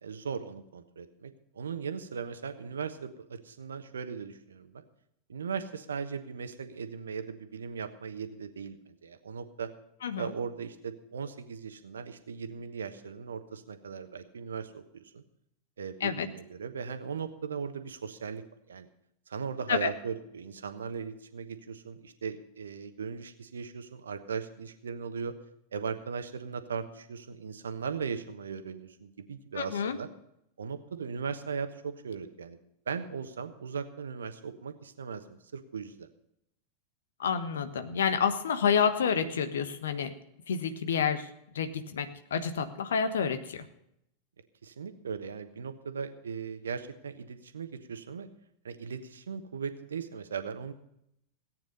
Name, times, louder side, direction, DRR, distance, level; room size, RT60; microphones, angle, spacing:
voice 1, 0.0-4.8 5.3-9.7 10.2-15.2 15.8-18.9 19.3-25.3 25.7-30.1 30.6-32.6 32.9-36.1 44.6-48.3 48.6-50.7, right 6 dB, 70° right, 10 dB, 1.2 m, -38 dB
voice 2, 29.5-30.0 37.2-40.1 40.5-41.3 41.5-43.6, left 6 dB, 65° left, 10 dB, 1.3 m, -29 dB
17.5 x 9.2 x 5.4 m, 0.77 s
figure-of-eight pair, 90°, 0 cm